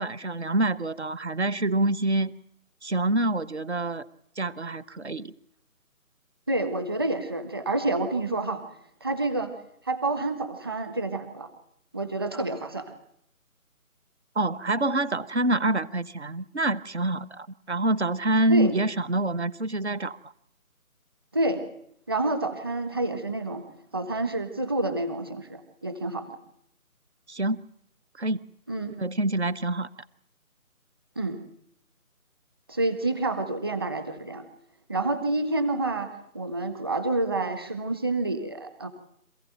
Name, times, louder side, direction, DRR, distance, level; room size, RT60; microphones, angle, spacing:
voice 1, 0.0-2.3 2.8-4.1 4.4-5.3 14.3-20.2 27.3-27.6 28.2-28.4 29.0-29.9, right 2 dB, 50° right, 15 dB, 1.1 m, -26 dB
voice 2, 6.5-8.6 9.0-9.5 9.8-11.5 11.9-12.9 18.5-18.7 21.3-21.7 22.1-23.6 23.9-26.3 28.7-28.9 31.1-31.4 32.7-34.4 34.9-38.9, right 2 dB, 15° right, 10 dB, 1.3 m, -28 dB
27.0 x 15.5 x 9.1 m, 0.72 s
figure-of-eight pair, 155°, 44 cm